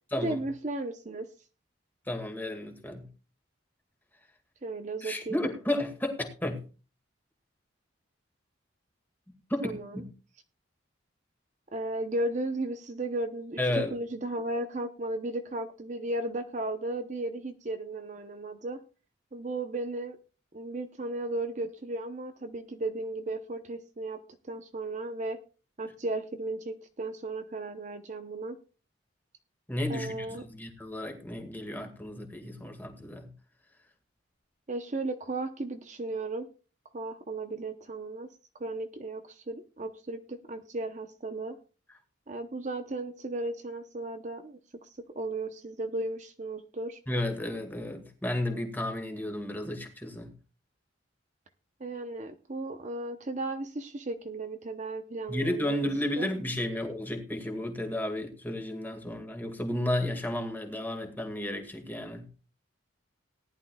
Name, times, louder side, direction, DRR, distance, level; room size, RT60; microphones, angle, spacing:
voice 1, 0.2-1.3 2.9-3.0 4.6-5.4 9.6-10.0 11.7-18.8 19.3-20.2 20.5-24.2 24.5-25.4 25.8-28.6 29.9-30.4 34.7-36.5 36.9-38.3 38.6-41.6 42.3-44.9 45.2-47.0 51.8-55.9 56.2-56.3, right 2 dB, 35° right, 7 dB, 0.7 m, -35 dB
voice 2, 2.1-3.1 5.0-6.6 9.5-10.0 13.6-14.0 29.7-33.3 47.1-50.3 55.3-62.3, left 1 dB, 10° left, 4 dB, 1.9 m, -33 dB
18.5 x 11.0 x 2.3 m, 0.34 s
head